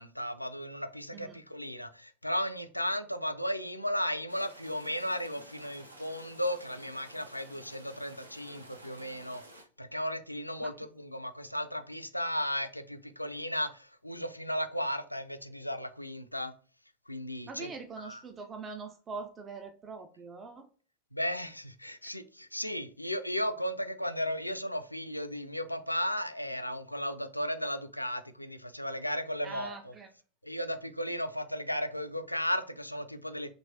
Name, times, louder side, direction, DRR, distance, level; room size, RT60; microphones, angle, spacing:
voice 1, 0.0-9.4 9.8-16.5 17.1-17.7 18.0-18.2 21.1-29.9 30.4-33.5, equal, 90° left, 0.3 m, -35 dB
sound 1, 4.3-9.6, right 1 dB, 80° right, 0.6 m, -52 dB
voice 2, 17.5-20.7 29.4-30.1, right 4 dB, 20° right, 0.4 m, -43 dB
3.1 x 3.0 x 2.7 m
figure-of-eight pair, 90°, 0 cm